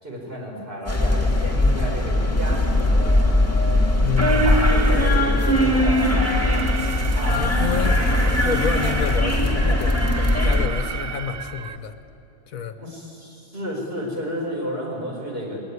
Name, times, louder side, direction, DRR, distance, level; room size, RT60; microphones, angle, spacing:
voice 1, 0.0-3.4 4.4-6.7 7.1-7.9 12.8-15.6, equal, 40° right, -2 dB, 5.2 m, -32 dB
sound 1, 0.9-10.7, left 1 dB, 10° left, 2.2 m, -20 dB
voice 2, 4.0-4.7 7.3-8.0 8.4-12.0 12.5-12.8, left 7 dB, 70° left, 9 dB, 1.4 m, -29 dB
Alarm, 4.2-11.8, right 7 dB, 65° right, 0.4 m, -34 dB
21.5 x 19.0 x 9.6 m, 2.9 s
omnidirectional pair, 1.5 m